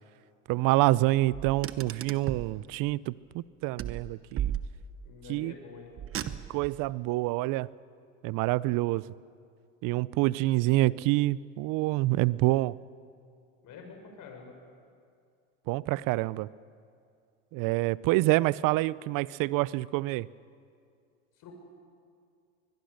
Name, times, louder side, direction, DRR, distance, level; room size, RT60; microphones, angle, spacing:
voice 1, 0.5-4.6 5.3-5.5 6.5-7.7 8.2-9.0 9.8-12.7 15.7-16.5 17.5-20.3, right 19 dB, 55° right, 21 dB, 0.6 m, -27 dB
Car, 1.3-2.6 3.8-5.1 6.0-6.8, right 10 dB, 35° right, 1.0 m, -35 dB
voice 2, 5.0-5.9 13.6-14.5 21.4-21.5, left 5 dB, 50° left, 3 dB, 5.8 m, -47 dB
22.0 x 21.5 x 6.6 m, 2.3 s
hypercardioid pair, 95°, 40 cm